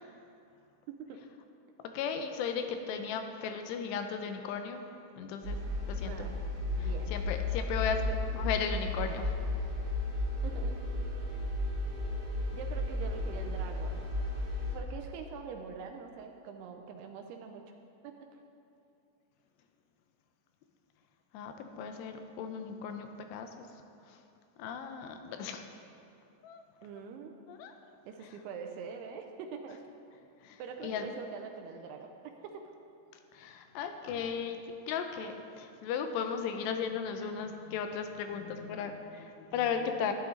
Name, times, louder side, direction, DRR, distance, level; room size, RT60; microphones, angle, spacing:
voice 1, 0.9-1.2 6.0-6.3 6.8-7.1 8.1-8.2 10.4-10.8 12.5-14.0 14.7-17.6 18.0-18.1 26.8-27.3 28.1-29.8 30.6-32.6, right 6 dB, 80° right, 4 dB, 2.5 m, -44 dB
voice 2, 1.8-4.8 5.2-5.6 5.9-6.1 6.8-8.0 8.4-9.3 21.3-23.5 24.1-24.2 24.6-25.7 26.4-26.6 27.5-27.7 30.4-31.1 33.3-40.1, left 6 dB, 80° left, 6 dB, 2.7 m, -36 dB
sound 1, 5.4-14.8, left 2 dB, 50° right, 2.0 m, -34 dB
12.5 x 11.5 x 3.8 m, 2.7 s
omnidirectional pair, 5.0 m